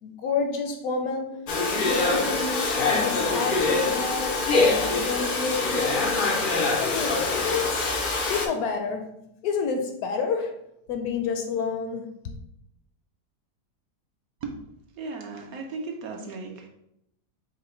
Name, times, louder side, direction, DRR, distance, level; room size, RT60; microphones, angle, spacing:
voice 1, 0.0-1.4 1.7-6.2 6.8-7.9 8.3-9.1 9.4-10.5 10.9-12.4, left 5 dB, 70° left, 5 dB, 0.9 m, -29 dB
Domestic sounds home sounds, 1.5-8.5, left 3 dB, 90° left, 0.4 m, -24 dB
voice 2, 15.0-16.7, right 4 dB, 70° right, 2 dB, 0.9 m, -36 dB
4.8 x 2.1 x 4.3 m, 0.80 s
omnidirectional pair, 1.8 m